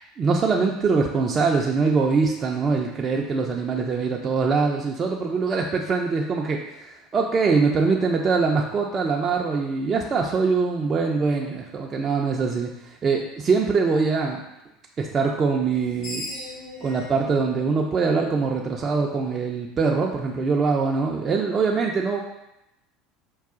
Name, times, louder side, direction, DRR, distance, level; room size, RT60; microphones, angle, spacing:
voice 1, 0.2-14.4 15.0-16.2 16.8-22.2, right 4 dB, 35° right, 0 dB, 0.4 m, -23 dB
Screech, 15.7-18.9, left 1 dB, 75° left, 1.5 m, -39 dB
4.7 x 2.4 x 3.6 m, 0.89 s
hypercardioid pair, 80°, 0 cm